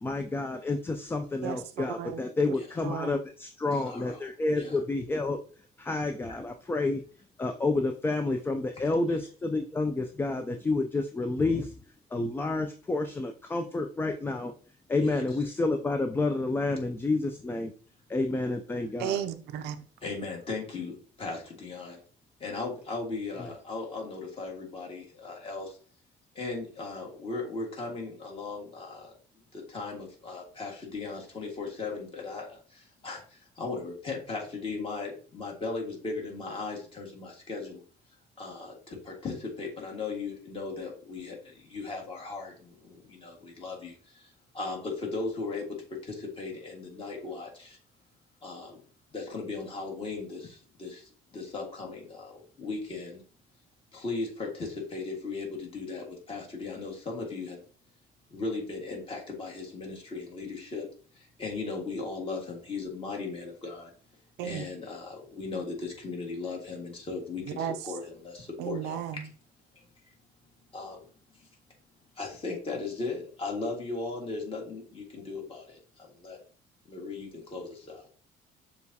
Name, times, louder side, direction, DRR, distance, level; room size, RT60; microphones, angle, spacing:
voice 1, 0.0-5.4 5.8-7.0 7.4-11.7 12.1-14.5 14.9-17.7 18.1-19.2, left 3 dB, 15° left, 0.3 m, -29 dB
voice 2, 1.4-2.2 2.8-3.2 19.0-19.9 64.4-64.6 67.6-67.7 68.6-69.3, right 9 dB, 80° right, 0.5 m, -34 dB
voice 3, 3.7-4.3 4.5-4.8 6.3-6.4 15.0-15.4 20.0-22.0 22.4-25.8 26.3-29.1 29.5-37.8 38.4-47.8 48.4-48.8 49.1-53.2 53.9-57.6 58.3-60.9 61.1-63.9 64.4-69.0 70.7-71.1 71.4-71.5 72.2-76.4 76.9-78.1, left 3 dB, 35° left, 1.7 m, -37 dB
6.7 x 2.3 x 2.7 m
cardioid pair, 110°, 17 cm